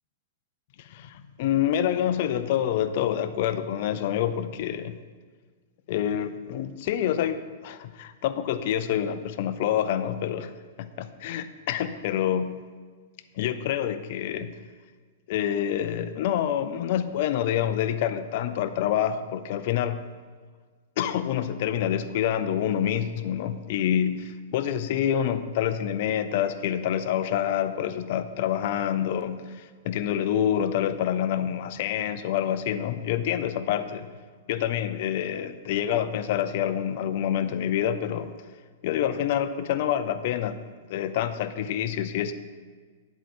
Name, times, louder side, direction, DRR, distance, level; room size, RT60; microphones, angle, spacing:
voice 1, 0.8-5.0 5.9-10.5 10.8-12.6 13.4-14.5 15.3-20.0 21.0-34.1 34.5-38.3 38.8-40.6 40.9-42.3, left 10 dB, 55° left, 11 dB, 0.6 m, -27 dB
9.2 x 8.0 x 4.4 m, 1.5 s
hypercardioid pair, 140°, 0 cm